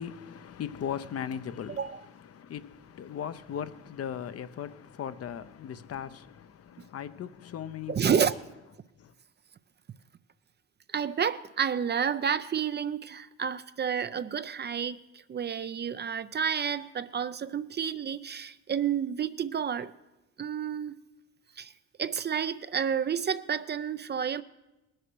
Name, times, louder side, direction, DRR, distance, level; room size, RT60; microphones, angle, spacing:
voice 1, 0.0-8.3 9.0-9.1, left 8 dB, 50° left, 0.7 m, -38 dB
voice 2, 1.7-2.0 6.8-6.9 7.9-8.4 10.9-19.9 20.4-21.0 21.6-21.7 22.0-24.4, right 7 dB, 35° right, 0.5 m, -30 dB
19.5 x 6.6 x 6.2 m
cardioid pair, 90°, 30 cm